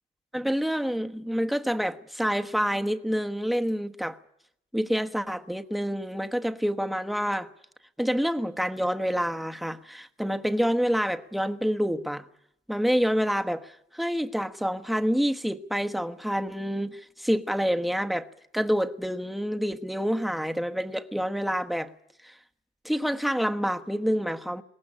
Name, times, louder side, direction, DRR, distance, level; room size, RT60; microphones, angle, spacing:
voice 1, 0.3-4.2 4.7-7.5 8.0-12.2 12.7-18.3 18.5-21.9 22.2-22.3 22.8-24.6, equal, ahead, 1.2 m, -27 dB
22.0 x 18.0 x 9.9 m
cardioid pair, 90°, 20 cm